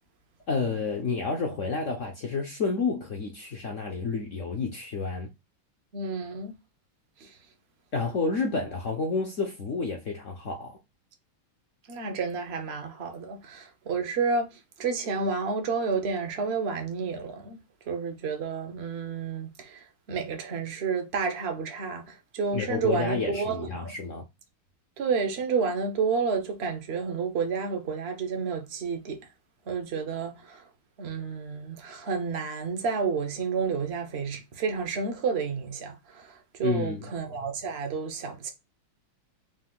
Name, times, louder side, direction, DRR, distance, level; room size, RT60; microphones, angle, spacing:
voice 1, 0.5-5.3 7.9-10.8 22.5-24.3 36.6-37.1, left 4 dB, 70° left, 0.7 m, -30 dB
voice 2, 5.9-6.5 7.2-7.4 11.9-17.6 17.9-23.9 25.0-29.2 29.7-30.6 31.0-38.5, right 5 dB, 60° right, 0.6 m, -30 dB
5.0 x 2.5 x 3.7 m
omnidirectional pair, 2.3 m